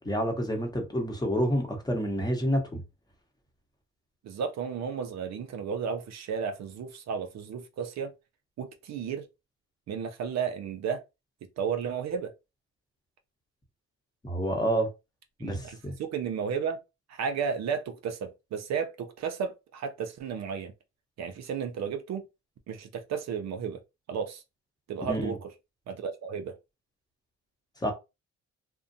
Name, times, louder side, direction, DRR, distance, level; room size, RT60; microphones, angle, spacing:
voice 1, 0.0-2.8 14.2-14.9 15.4-15.9 25.1-25.4 27.8-27.9, equal, 15° left, 0.9 m, -28 dB
voice 2, 4.2-8.1 8.6-9.3 9.9-11.0 11.6-12.3 15.4-16.8 17.1-20.7 21.2-22.2 22.7-23.8 24.1-24.4 24.9-25.5 25.9-26.6, right 6 dB, 60° right, 0.5 m, -33 dB
2.5 x 2.1 x 2.6 m
cardioid pair, 90°, 30 cm